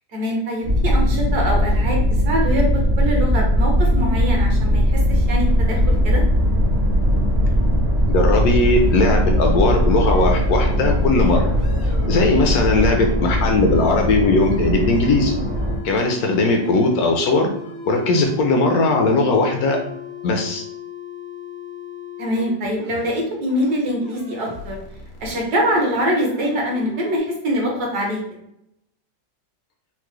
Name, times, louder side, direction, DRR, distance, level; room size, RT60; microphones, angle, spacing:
voice 1, 0.1-2.0 2.2-4.8 5.1-6.2 12.5-12.6 16.2-16.5 22.2-24.8 25.2-28.2, equal, 65° right, -1 dB, 1.5 m, -24 dB
sound 1, 0.6-15.8, equal, 45° right, 0.9 m, -19 dB
voice 2, 8.1-11.5 12.1-15.3 15.8-17.5 17.8-19.8 20.2-20.6, left 2 dB, 70° left, 3 dB, 1.0 m, -18 dB
sound 2, 8.6-22.5 22.8-23.1 23.5-23.7 24.0-27.2, left 4 dB, 85° left, 1.5 m, -37 dB
4.5 x 2.1 x 3.0 m, 0.80 s
omnidirectional pair, 1.8 m